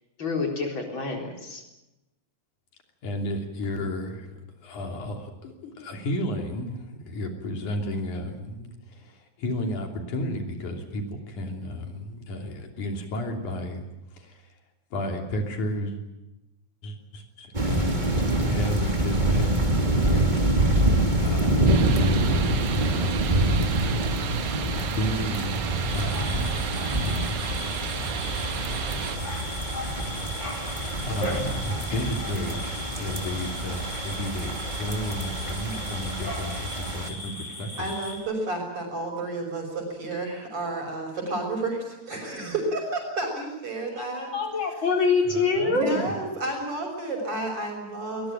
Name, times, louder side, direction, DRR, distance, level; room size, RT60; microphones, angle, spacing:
voice 1, 0.2-1.6 43.9-44.1 44.3-46.0, left 4 dB, 40° left, 2 dB, 4.7 m, -25 dB
voice 2, 3.0-4.4 4.6-13.9 14.2-14.4 14.9-16.0 16.8-19.5 20.1-20.4 20.7-20.9 21.2-23.9 25.0-26.5 27.0-27.4 30.8-37.9 45.3-46.1, left 1 dB, 75° left, 3 dB, 4.5 m, -33 dB
sound 1, 17.5-37.1, right 1 dB, 15° right, 2.4 m, -26 dB
sound 2, 21.7-29.2, right 10 dB, 80° right, 2.5 m, -35 dB
sound 3, 25.8-38.2, left 1 dB, 20° left, 6.8 m, -38 dB
voice 3, 37.8-44.3 45.7-48.3, right 2 dB, 45° right, -5 dB, 6.6 m, -31 dB
22.0 x 20.0 x 8.9 m, 0.99 s
omnidirectional pair, 3.5 m